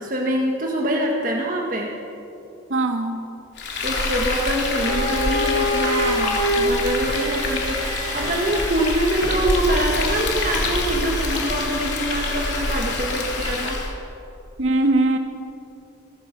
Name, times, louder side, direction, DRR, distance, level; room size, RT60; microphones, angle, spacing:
voice 1, 0.0-1.9 3.8-13.8, right 1 dB, 40° right, 0 dB, 1.7 m, -25 dB
voice 2, 2.7-3.2 14.6-15.2, right 2 dB, 80° right, 5 dB, 1.7 m, -20 dB
Frying (food), 3.6-13.9, left 2 dB, 55° left, 3.6 m, -26 dB
Bowed string instrument, 4.7-9.5, equal, 25° left, 6.1 m, -26 dB
27.0 x 16.0 x 6.1 m, 2.9 s
head